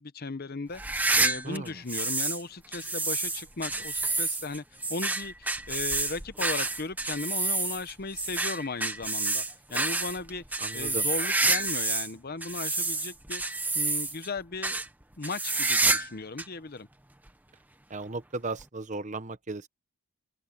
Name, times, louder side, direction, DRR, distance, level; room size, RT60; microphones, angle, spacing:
voice 1, 0.0-9.4 9.7-10.4 10.7-13.4 13.7-14.8 15.2-16.9, left 3 dB, 45° left, 0.8 m, -36 dB
sound 1, 0.7-2.4 2.7-12.1 12.4-14.3 14.6-14.9 15.2-16.1 16.4-16.5 17.3-17.4 18.6-18.7, right 3 dB, 10° right, 0.9 m, -28 dB
voice 2, 1.4-1.8 10.6-11.1 17.9-19.7, right 3 dB, 35° right, 0.9 m, -36 dB
open air
head